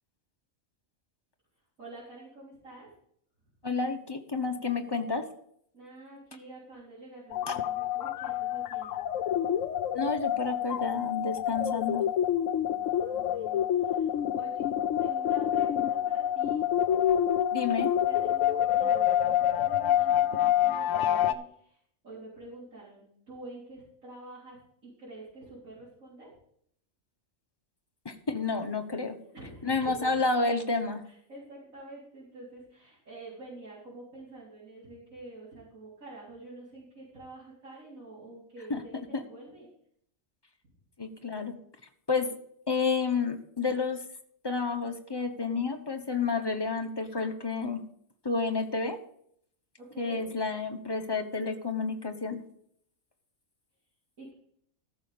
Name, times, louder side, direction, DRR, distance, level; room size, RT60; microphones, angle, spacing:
voice 1, 1.8-2.9 5.7-9.0 12.7-14.6 15.0-16.7 18.1-21.8 22.0-24.6 24.8-26.3 29.3-30.1 31.0-39.7 49.8-50.2 54.2-54.3, right 2 dB, 80° right, -10 dB, 4.1 m, -47 dB
voice 2, 3.6-5.2 7.5-7.6 9.9-12.0 17.5-17.9 28.0-29.1 29.6-31.0 38.7-38.8 39.1-39.2 41.0-41.5 42.1-42.3 42.7-44.0 44.4-47.8 48.2-49.0 50.0-52.4, left 4 dB, 20° left, 5 dB, 0.9 m, -30 dB
sound 1, 7.3-21.3, left 10 dB, 70° left, 0.9 m, -27 dB
14.0 x 6.3 x 5.0 m, 0.67 s
omnidirectional pair, 1.4 m